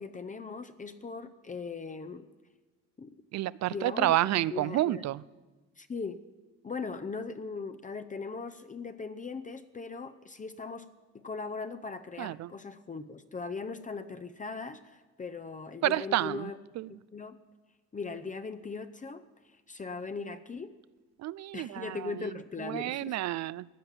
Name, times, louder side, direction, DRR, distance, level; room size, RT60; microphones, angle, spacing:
voice 1, 0.0-2.3 3.0-3.1 3.7-4.2 4.5-5.0 5.8-6.2 6.6-10.9 11.1-16.6 17.1-17.4 17.9-20.7 21.5-23.2, left 4 dB, 25° left, 0.7 m, -39 dB
voice 2, 3.3-5.2 12.2-12.5 15.8-16.5 16.8-16.9 21.2-22.1 22.7-23.7, right 15 dB, 60° right, 0.4 m, -29 dB
15.5 x 8.9 x 7.3 m
cardioid pair, 90°, 30 cm